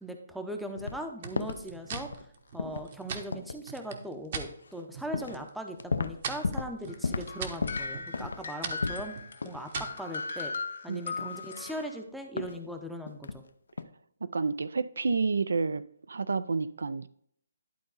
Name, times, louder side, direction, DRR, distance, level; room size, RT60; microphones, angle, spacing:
voice 1, 0.0-2.3 2.5-9.2 9.4-10.5 10.8-13.4, equal, ahead, 0.6 m, -39 dB
sound 1, 0.7-1.0 1.4-1.7 1.9-2.2 2.6-2.9 3.3-3.6 4.7-4.8 5.1-5.4 5.7-6.8 7.0-7.3 7.6-9.1 9.4-9.6 10.0-10.1 11.2-11.9 12.4-12.6 13.1-13.4 13.7-13.8, left 4 dB, 85° left, 0.6 m, -34 dB
sound 2, 1.2-4.5 4.9-5.5 5.8-10.1, right 6 dB, 40° right, 0.9 m, -41 dB
sound 3, 6.9-12.0, left 4 dB, 70° left, 1.8 m, -38 dB
voice 2, 14.2-15.8 16.1-17.1, right 4 dB, 80° right, 0.4 m, -29 dB
11.5 x 3.9 x 3.9 m
hypercardioid pair, 165°, 0 cm